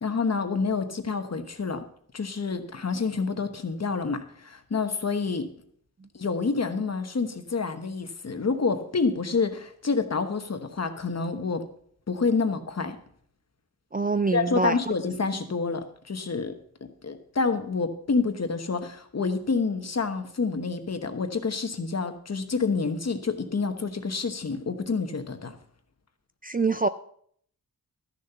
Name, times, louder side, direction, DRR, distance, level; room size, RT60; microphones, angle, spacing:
voice 1, 0.0-1.8 2.1-5.5 6.1-11.6 12.1-13.0 14.3-16.5 17.0-25.5, left 4 dB, 45° left, 1.1 m, -28 dB
voice 2, 13.9-14.8 26.4-26.9, right 4 dB, 25° right, 0.3 m, -25 dB
13.0 x 6.8 x 5.6 m
wide cardioid pair, 120°, 36 cm